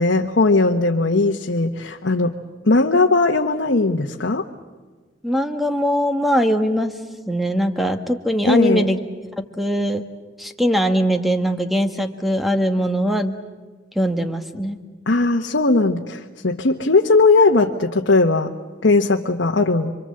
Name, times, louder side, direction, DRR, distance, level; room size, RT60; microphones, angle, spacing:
voice 1, 0.0-2.3 2.6-4.4 8.4-8.9 15.1-18.5 18.8-19.9, left 3 dB, 80° left, 2 dB, 1.1 m, -18 dB
voice 2, 5.2-7.0 7.3-9.3 9.6-10.0 10.4-13.4 13.9-14.8, equal, ahead, 6 dB, 1.4 m, -21 dB
28.0 x 24.5 x 7.7 m, 1.4 s
head